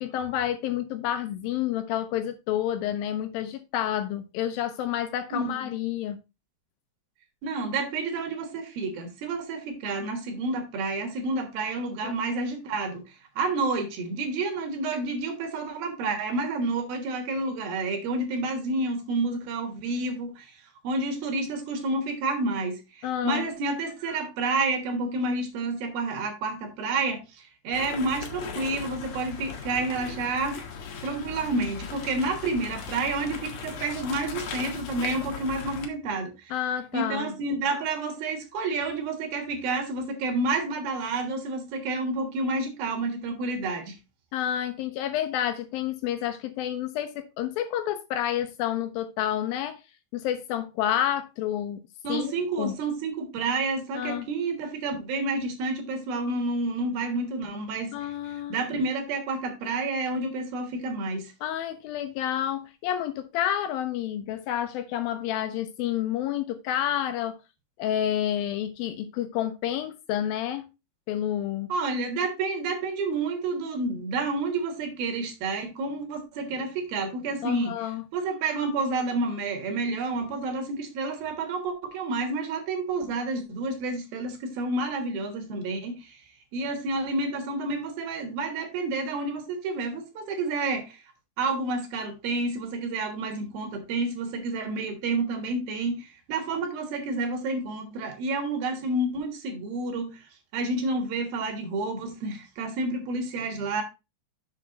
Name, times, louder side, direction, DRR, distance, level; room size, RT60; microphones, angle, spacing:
voice 1, 0.0-6.2 12.0-12.1 23.0-23.5 36.5-37.4 44.3-49.8 50.1-51.8 52.1-52.8 54.0-54.3 57.9-58.7 61.4-67.4 67.8-70.7 71.1-71.7 77.4-78.0, left 11 dB, 80° left, 2.1 m, -29 dB
voice 2, 5.3-5.7 7.4-13.0 13.4-20.5 20.8-30.6 31.0-36.5 36.9-44.0 52.0-58.1 58.5-61.3 71.7-77.8 78.1-86.2 86.5-91.0 91.4-103.8, right 3 dB, 65° right, 3.2 m, -29 dB
sound 1, 27.7-35.9, left 6 dB, 60° left, 2.3 m, -38 dB
7.2 x 6.0 x 3.9 m
omnidirectional pair, 4.8 m